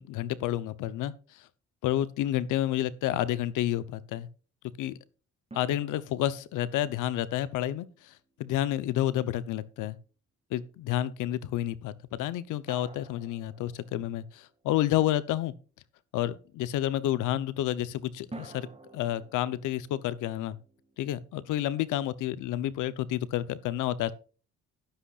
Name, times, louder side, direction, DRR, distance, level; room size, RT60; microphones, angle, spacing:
voice 1, 0.0-1.5 1.8-4.3 4.8-5.0 5.5-8.1 8.4-10.0 10.5-15.5 16.1-18.7 18.9-20.6 21.0-24.1, left 13 dB, 90° left, 0.9 m, -30 dB
sound 1, 5.5-8.9 12.7-14.7 18.3-21.4, right 3 dB, 20° right, 2.2 m, -51 dB
11.5 x 11.5 x 2.5 m
cardioid pair, 90°, 30 cm